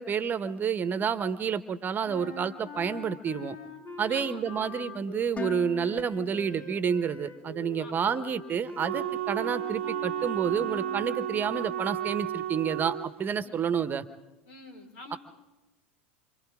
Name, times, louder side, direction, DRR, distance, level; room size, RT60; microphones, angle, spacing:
voice 1, 0.0-3.6 4.0-14.0, right 7 dB, 30° right, 12 dB, 1.2 m, -29 dB
sound 1, 2.0-11.6, left 4 dB, 50° left, 3.2 m, -44 dB
voice 2, 4.1-4.6 7.8-8.1 13.4-13.7 14.5-15.2, left 2 dB, 70° left, 3 dB, 4.8 m, -47 dB
Dishes pots and pans, 5.4-7.4, left 9 dB, 20° left, 0.6 m, -41 dB
Wind instrument woodwind instrument, 8.8-13.1, right 12 dB, 80° right, 0.6 m, -33 dB
28.5 x 26.0 x 3.7 m, 1.1 s
hypercardioid pair, 80°, 6 cm